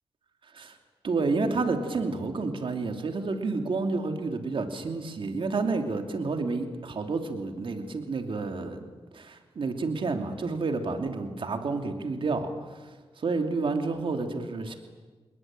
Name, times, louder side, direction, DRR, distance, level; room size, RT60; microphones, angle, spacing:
voice 1, 1.0-8.9 9.1-14.8, right 3 dB, 60° right, 5 dB, 2.9 m, -30 dB
28.0 x 20.5 x 9.0 m, 1.3 s
wide cardioid pair, 100°, 10 cm